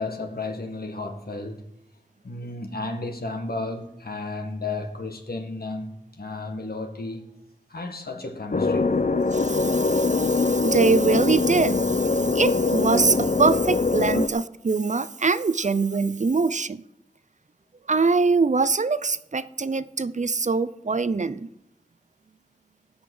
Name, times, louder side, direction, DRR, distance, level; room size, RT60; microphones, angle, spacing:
voice 1, 0.0-1.6 2.2-7.3 7.7-9.0, left 2 dB, 75° left, 1.9 m, -33 dB
sound 1, 8.5-14.3, left 3 dB, 55° left, 0.7 m, -23 dB
voice 2, 9.3-16.8 17.9-21.5, right 4 dB, 50° right, 0.6 m, -23 dB
17.0 x 5.8 x 7.8 m
wide cardioid pair, 55°, 16 cm